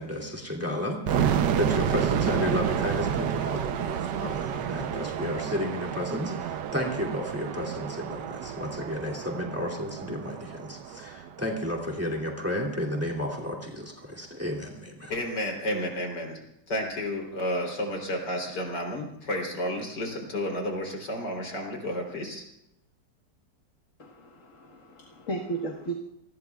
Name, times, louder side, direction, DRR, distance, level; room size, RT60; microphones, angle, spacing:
voice 1, 0.0-15.1, left 1 dB, 10° right, 0 dB, 2.6 m, -32 dB
sound 1, 1.1-11.9, right 8 dB, 80° right, 1.4 m, -30 dB
voice 2, 15.1-16.4 16.7-22.4, left 1 dB, 75° left, 1 dB, 4.1 m, -31 dB
voice 3, 24.0-25.9, right 3 dB, 45° left, 0 dB, 1.8 m, -35 dB
28.5 x 20.0 x 2.4 m, 0.81 s
omnidirectional pair, 1.9 m